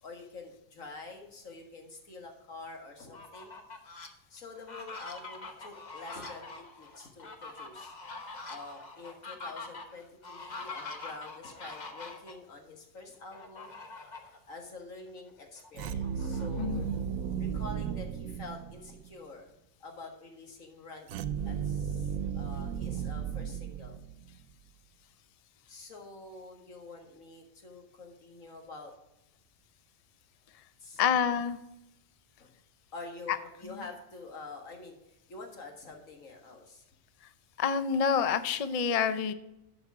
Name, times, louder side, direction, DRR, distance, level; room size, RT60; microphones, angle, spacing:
voice 1, 0.0-3.6 4.3-7.9 8.5-13.8 14.5-16.9 17.4-19.5 19.8-24.0 25.7-28.9 30.8-31.4 32.4-32.5 32.9-36.8, left 3 dB, 75° left, 2 dB, 2.1 m, -47 dB
Fowl, 3.0-4.1 4.6-12.3 13.3-14.4 14.8-14.9 15.3-17.0, left 3 dB, 35° left, 1.0 m, -44 dB
sound 1, 15.7-19.1 21.1-24.4, right 7 dB, 85° right, 1.0 m, -35 dB
voice 2, 16.6-16.9 31.0-31.6 37.6-39.3, left 7 dB, 60° left, 12 dB, 0.4 m, -27 dB
11.5 x 5.0 x 4.7 m, 0.88 s
omnidirectional pair, 1.4 m